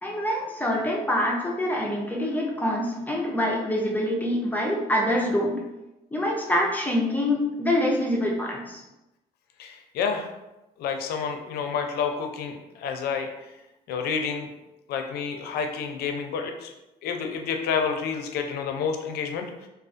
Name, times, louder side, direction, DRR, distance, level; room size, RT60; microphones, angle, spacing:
voice 1, 0.0-5.6 6.1-8.8, left 1 dB, 10° left, -2 dB, 0.5 m, -25 dB
voice 2, 9.6-10.3 10.8-13.5 13.9-14.5 14.9-16.7 17.0-19.7, left 6 dB, 70° left, 5 dB, 0.4 m, -29 dB
2.4 x 2.3 x 2.4 m, 0.96 s
cardioid pair, 110°, 17 cm